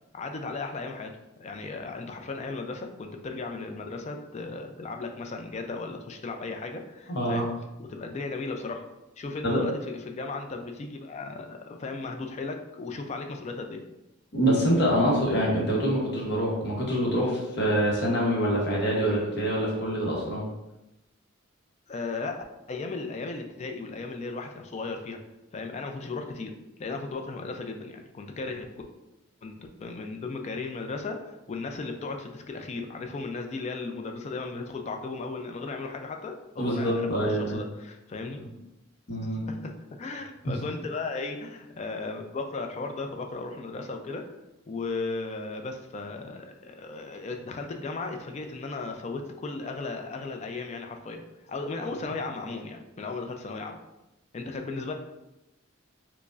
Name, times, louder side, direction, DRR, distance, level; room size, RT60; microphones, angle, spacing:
voice 1, 0.1-1.1 1.4-7.5 7.8-8.8 9.2-13.8 21.9-25.2 25.5-26.5 26.8-28.7 29.4-38.4 39.2-44.2 44.7-53.8 54.3-54.9, left 3 dB, 35° left, 4 dB, 0.3 m, -36 dB
voice 2, 7.1-7.4 9.4-9.6 14.3-20.4 36.6-37.6 38.4-38.5 39.1-39.5, equal, 55° left, -3 dB, 0.8 m, -25 dB
4.7 x 2.0 x 2.4 m, 0.95 s
head